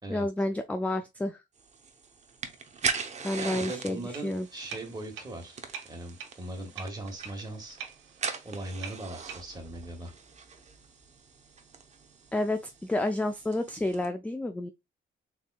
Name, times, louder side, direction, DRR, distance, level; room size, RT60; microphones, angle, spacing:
voice 1, 0.1-1.4 3.2-4.5 12.3-14.7, left 1 dB, 5° left, 0.3 m, -30 dB
sound 1, 1.6-14.1, right 5 dB, 35° right, 0.7 m, -40 dB
voice 2, 3.3-5.6 5.9-7.8 8.4-10.1, right 1 dB, 20° right, 1.5 m, -39 dB
sound 2, 4.1-9.6, right 7 dB, 75° right, 0.7 m, -46 dB
3.7 x 3.6 x 2.3 m
cardioid pair, 90°, 20 cm